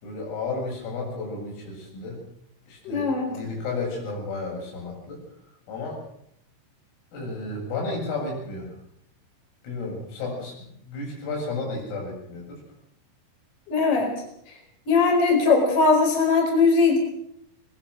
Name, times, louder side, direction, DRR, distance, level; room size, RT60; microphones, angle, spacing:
voice 1, 0.0-2.2 2.7-5.2 5.7-6.0 7.1-8.7 9.6-12.6, left 3 dB, 90° left, -1 dB, 10.0 m, -32 dB
voice 2, 2.8-3.3 13.7-14.1 14.9-17.0, left 4 dB, 30° left, 2 dB, 5.3 m, -20 dB
22.0 x 20.0 x 6.4 m, 0.72 s
omnidirectional pair, 5.8 m